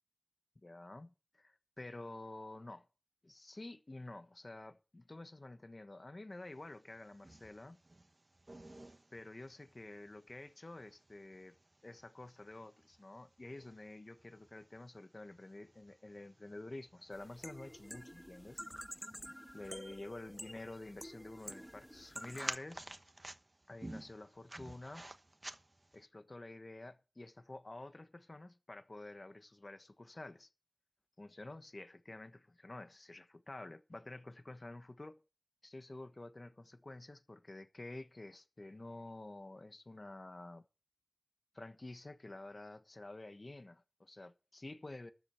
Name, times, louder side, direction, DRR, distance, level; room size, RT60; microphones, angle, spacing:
voice 1, 0.6-2.9 3.2-7.8 9.1-11.6 11.8-18.6 19.5-22.9 23.7-25.1 25.9-30.5 31.2-35.2 35.6-40.6 41.5-45.1, left 2 dB, 60° left, 1.2 m, -50 dB
sound 1, 6.6-26.1, right 1 dB, 50° right, 1.1 m, -53 dB
sound 2, 17.1-22.6, equal, ahead, 0.5 m, -50 dB
13.0 x 7.5 x 6.8 m
wide cardioid pair, 45°, 0 cm